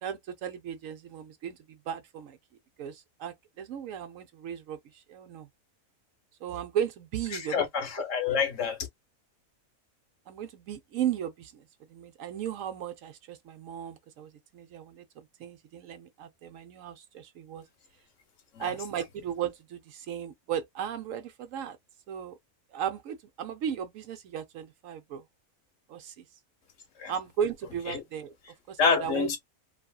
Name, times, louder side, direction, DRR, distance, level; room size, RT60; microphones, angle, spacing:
voice 1, 0.0-2.4 2.8-5.5 6.4-7.6 10.3-17.6 18.6-21.8 22.1-22.3 22.7-25.2 25.9-26.2 27.1-28.3 28.7-29.3, right 9 dB, 70° right, 1.0 m, -36 dB
voice 2, 7.3-8.8 18.5-18.7 27.0-27.1 27.9-28.0 28.8-29.4, left 6 dB, 65° left, 1.0 m, -27 dB
2.8 x 2.6 x 2.3 m
omnidirectional pair, 1.5 m